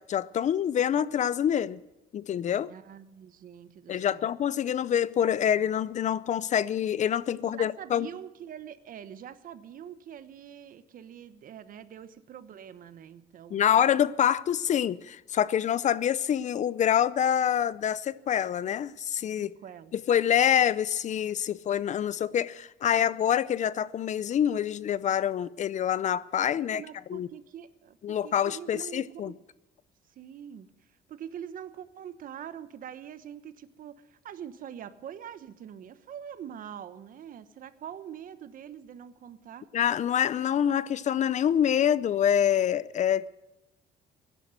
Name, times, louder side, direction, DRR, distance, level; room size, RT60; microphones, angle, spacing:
voice 1, 0.0-1.8 2.1-2.7 3.9-8.1 13.5-19.6 19.9-26.8 27.1-27.3 28.0-29.3 39.7-43.3, left 9 dB, 45° left, 0.6 m, -26 dB
voice 2, 2.7-4.3 7.3-13.6 19.4-19.9 24.9-25.1 26.5-29.4 30.1-30.7 31.1-39.7, right 9 dB, 55° right, 1.1 m, -44 dB
17.0 x 11.0 x 7.9 m
cardioid pair, 110°, 17 cm